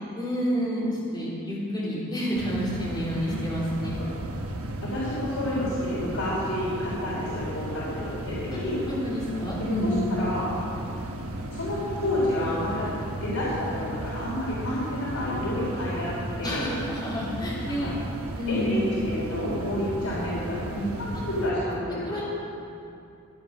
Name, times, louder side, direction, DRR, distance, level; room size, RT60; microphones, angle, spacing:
voice 1, 0.1-4.0 8.9-10.1 16.4-17.9 18.4-18.8 21.1-21.2 21.9-22.2, equal, 20° left, -8 dB, 3.9 m, -29 dB
sound 1, 2.3-21.5, right 1 dB, 80° right, 1.1 m, -35 dB
voice 2, 4.9-8.8 9.6-10.5 11.5-12.9 13.2-16.7 17.7-17.9 18.5-22.2, left 1 dB, 90° left, -7 dB, 3.6 m, -29 dB
14.5 x 9.6 x 6.1 m, 2.6 s
head